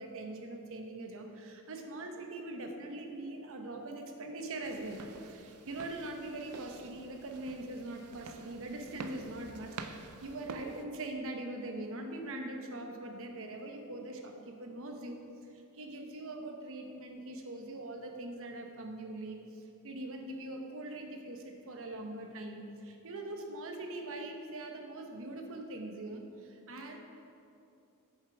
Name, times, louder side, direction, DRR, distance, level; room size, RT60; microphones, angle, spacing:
voice 1, 0.0-5.0 5.3-15.2 15.5-27.0, right 2 dB, 65° right, 4 dB, 0.9 m, -42 dB
sound 1, 4.6-10.8, right 4 dB, 80° right, 0.5 m, -48 dB
8.3 x 7.3 x 4.8 m, 2.7 s
head